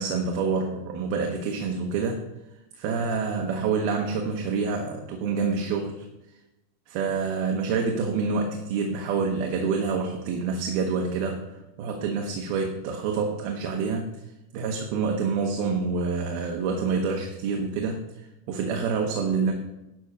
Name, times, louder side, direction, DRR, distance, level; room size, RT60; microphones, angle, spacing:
voice 1, 0.0-2.2 2.8-6.0 6.9-14.1 14.5-19.5, right 5 dB, 80° right, 3 dB, 2.8 m, -27 dB
12.0 x 5.7 x 6.4 m, 0.94 s
omnidirectional pair, 4.4 m